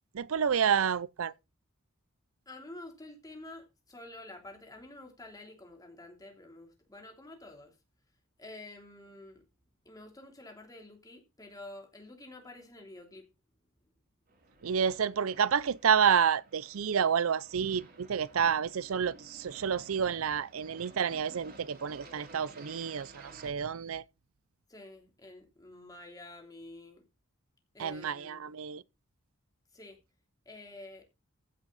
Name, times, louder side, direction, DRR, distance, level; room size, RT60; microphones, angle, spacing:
voice 1, 0.1-1.3 14.6-24.0 27.8-28.8, right 7 dB, 75° right, 0.5 m, -29 dB
voice 2, 2.5-7.7 8.4-9.4 9.8-13.3 14.5-14.8 24.7-27.0 27.7-28.5 29.7-30.0 30.4-31.0, left 2 dB, 20° left, 3.3 m, -49 dB
Aircraft, 14.3-23.5, right 2 dB, 50° right, 3.4 m, -55 dB
15.5 x 6.3 x 4.1 m
head